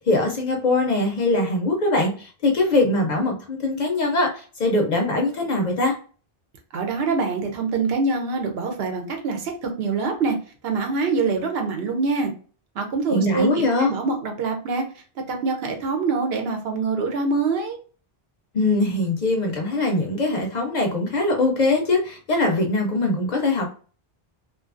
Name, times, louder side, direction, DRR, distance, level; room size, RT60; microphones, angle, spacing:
voice 1, 0.0-5.9 13.1-13.9 18.5-23.7, left 2 dB, 55° left, 2 dB, 0.6 m, -22 dB
voice 2, 6.7-10.4 10.6-12.3 12.7-17.8, right 4 dB, 75° right, 3 dB, 0.9 m, -25 dB
2.5 x 2.3 x 2.4 m, 0.39 s
omnidirectional pair, 1.0 m